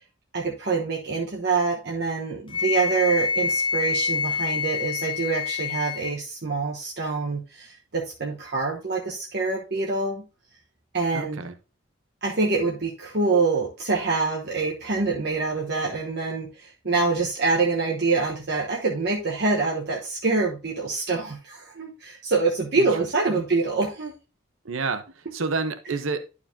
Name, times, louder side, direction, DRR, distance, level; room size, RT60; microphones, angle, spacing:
voice 1, 0.3-10.3 10.9-11.4 12.2-24.1, right 3 dB, 55° right, -1 dB, 1.1 m, -25 dB
Wind instrument woodwind instrument, 2.5-6.2, left 5 dB, 25° left, 0.4 m, -27 dB
voice 2, 11.1-11.5 22.8-23.4 24.6-26.2, right 4 dB, 80° right, 8 dB, 0.9 m, -30 dB
11.5 x 4.8 x 2.7 m, 0.32 s
head